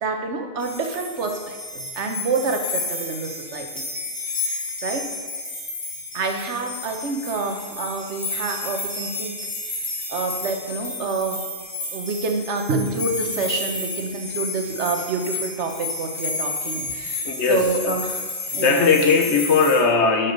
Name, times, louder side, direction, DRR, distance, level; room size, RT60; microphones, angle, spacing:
voice 1, 0.0-3.8 4.3-5.1 6.1-9.4 9.7-11.4 11.9-18.2 18.5-18.9, right 3 dB, 80° right, 4 dB, 1.3 m, -27 dB
sound 1, 0.6-19.8, left 3 dB, 50° left, 2.4 m, -31 dB
voice 2, 17.2-17.9 18.6-20.3, left 5 dB, 75° left, 5 dB, 1.3 m, -19 dB
11.0 x 5.7 x 5.3 m, 1.5 s
omnidirectional pair, 1.2 m